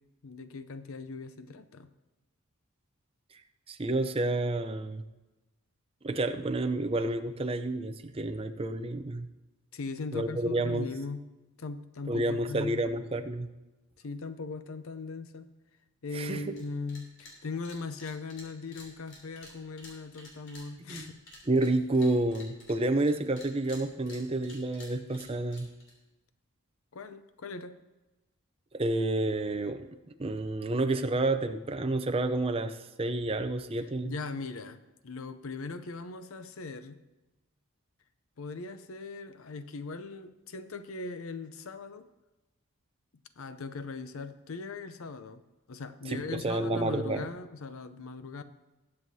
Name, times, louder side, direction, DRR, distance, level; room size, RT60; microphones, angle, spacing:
voice 1, 0.2-1.9 9.7-11.3 11.6-12.9 14.0-15.6 16.0-21.2 26.9-27.8 34.0-37.0 38.4-42.1 43.4-45.4 45.7-48.4, left 3 dB, 70° left, 11 dB, 0.6 m, -39 dB
voice 2, 3.7-5.0 6.0-9.3 10.1-10.9 12.1-13.5 16.1-16.5 20.9-21.1 21.5-25.7 28.7-29.9 30.2-34.1 46.1-47.2, right 2 dB, 25° right, 9 dB, 0.5 m, -29 dB
sound 1, 16.5-16.6 16.9-17.4 17.6-23.1 23.4-25.9, left 2 dB, 55° left, 3.3 m, -50 dB
20.0 x 7.7 x 2.8 m, 1.1 s
head